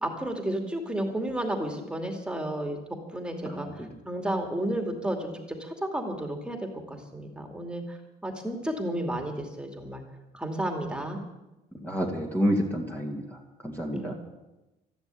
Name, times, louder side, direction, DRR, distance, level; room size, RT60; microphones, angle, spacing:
voice 1, 0.0-2.8 3.1-3.7 4.1-6.6 6.9-10.0 10.3-11.2 13.9-14.1, right 1 dB, 5° right, 3 dB, 2.5 m, -32 dB
voice 2, 3.4-3.9 11.8-14.1, equal, 10° left, 0 dB, 2.2 m, -29 dB
13.5 x 11.5 x 8.4 m, 1.0 s
cardioid pair, 110°, 17 cm